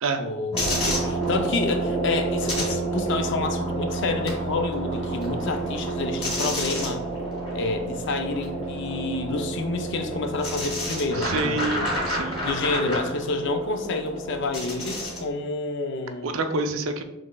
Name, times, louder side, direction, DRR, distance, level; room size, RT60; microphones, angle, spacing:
voice 1, 0.2-7.0 7.5-11.9 12.4-16.3, left 3 dB, 60° left, 6 dB, 0.5 m, -29 dB
sound 1, 0.5-15.3, right 1 dB, 30° left, 1.4 m, -29 dB
voice 2, 11.2-12.4 16.2-17.0, right 3 dB, 80° right, 6 dB, 0.5 m, -27 dB
6.1 x 3.1 x 2.2 m, 0.90 s
head